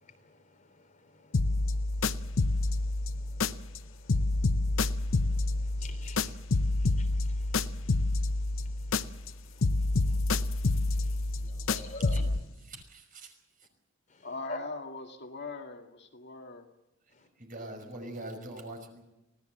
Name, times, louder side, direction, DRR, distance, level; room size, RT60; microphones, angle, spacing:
voice 1, 0.0-11.4 11.7-12.2 14.1-14.6, left 2 dB, 40° left, 3.1 m, -50 dB
sound 1, 1.3-3.8 4.1-9.3 9.6-12.4, left 2 dB, 75° left, 0.8 m, -28 dB
voice 2, 11.3-12.3 12.6-13.3 17.4-19.0, right 1 dB, 45° right, 5.7 m, -44 dB
voice 3, 14.2-16.7, left 3 dB, 55° left, 2.0 m, -41 dB
25.5 x 18.0 x 7.9 m
head